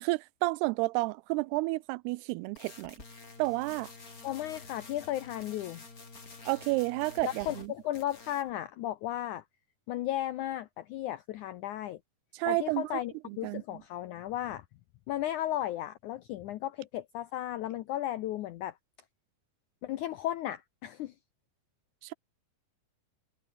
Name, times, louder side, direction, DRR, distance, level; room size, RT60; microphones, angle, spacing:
voice 1, 0.0-3.0 3.4-3.9 6.5-7.7 12.3-12.9 13.3-13.8 22.0-22.1, right 23 dB, 90° right, 2.6 m, -31 dB
sound 1, 2.6-7.7 7.9-8.5, left 3 dB, 25° left, 3.3 m, -49 dB
voice 2, 4.2-5.8 7.2-9.4 9.9-12.0 12.5-14.6 15.1-18.7 19.8-21.1, left 13 dB, 85° left, 1.7 m, -35 dB
omnidirectional pair, 4.5 m